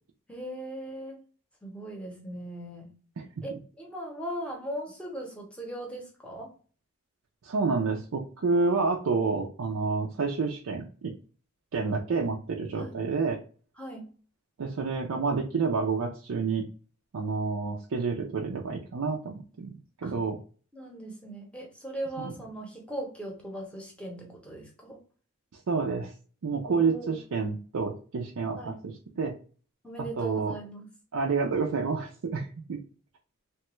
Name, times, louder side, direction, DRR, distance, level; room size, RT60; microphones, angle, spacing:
voice 1, 0.3-1.2 1.6-2.9 3.4-6.5 12.8-13.0 13.8-14.1 20.0-20.1 20.7-25.0 26.7-27.2 28.6-28.8 29.8-30.9, right 1 dB, 5° left, 0 dB, 0.7 m, -39 dB
voice 2, 7.4-11.1 11.7-13.4 14.6-16.6 17.1-19.7 20.0-20.4 22.2-22.3 25.5-26.1 26.4-29.3 30.2-30.6 31.1-32.8, right 4 dB, 80° right, 0 dB, 0.5 m, -29 dB
3.0 x 2.2 x 3.0 m, 0.40 s
head